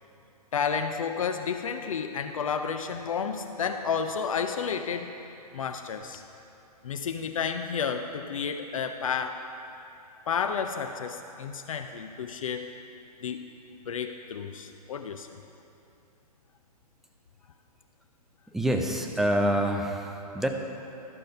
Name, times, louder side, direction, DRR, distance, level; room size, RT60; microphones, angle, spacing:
voice 1, 0.5-5.2 5.5-6.2 6.8-9.4 10.3-12.7 13.2-13.5 13.9-15.3, left 6 dB, 55° left, 6 dB, 0.5 m, -31 dB
voice 2, 18.5-20.5, right 1 dB, ahead, 3 dB, 0.4 m, -26 dB
12.5 x 6.4 x 5.3 m, 2.8 s
figure-of-eight pair, 120°, 20 cm